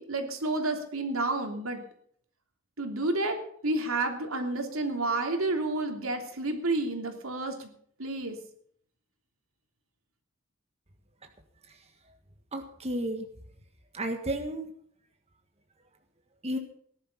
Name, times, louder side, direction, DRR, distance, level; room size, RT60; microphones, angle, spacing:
voice 1, 0.0-1.8 2.8-3.4 3.6-7.7 8.0-8.4, right 2 dB, 80° right, 4 dB, 3.2 m, -30 dB
voice 2, 12.5-13.2 13.9-14.7 16.4-16.6, right 1 dB, 30° right, 5 dB, 1.6 m, -32 dB
18.5 x 11.5 x 5.6 m, 0.62 s
head